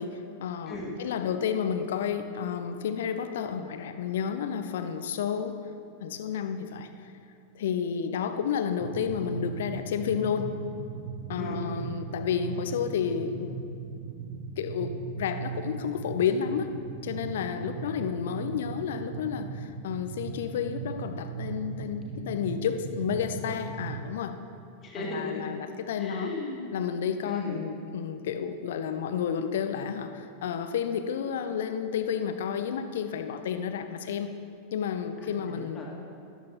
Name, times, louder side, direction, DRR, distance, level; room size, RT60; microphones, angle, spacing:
voice 1, 0.0-5.6 6.0-7.1 7.5-10.5 11.3-13.6 14.6-16.7 17.0-24.4 25.0-26.3 26.7-34.3 34.7-35.8, left 7 dB, 60° left, 9 dB, 0.6 m, -31 dB
sound 1, 8.8-24.0, right 6 dB, 45° right, 0.7 m, -38 dB
voice 2, 24.8-25.5 26.0-26.7 27.2-27.6 35.2-35.9, left 2 dB, 25° left, -3 dB, 2.0 m, -37 dB
13.5 x 12.0 x 2.9 m, 2.5 s
figure-of-eight pair, 90°, 0 cm